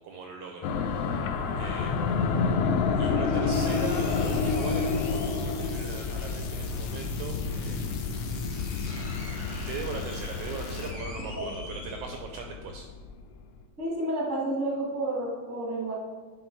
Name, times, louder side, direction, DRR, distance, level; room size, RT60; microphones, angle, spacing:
voice 1, 0.0-2.1 3.0-8.1 9.7-12.9, right 4 dB, 80° right, 3 dB, 1.5 m, -40 dB
sound 1, 0.6-13.2, left 4 dB, 85° left, 1.4 m, -29 dB
sound 2, 3.2-5.6 7.0-7.1 7.7-7.8 8.0-12.5 12.9-13.0, left 1 dB, 40° left, 0.8 m, -47 dB
sound 3, 3.5-10.9, left 5 dB, 70° left, 1.6 m, -44 dB
voice 2, 13.8-15.9, right 1 dB, 10° right, -3 dB, 0.7 m, -30 dB
10.0 x 3.9 x 4.5 m, 1.4 s
omnidirectional pair, 3.3 m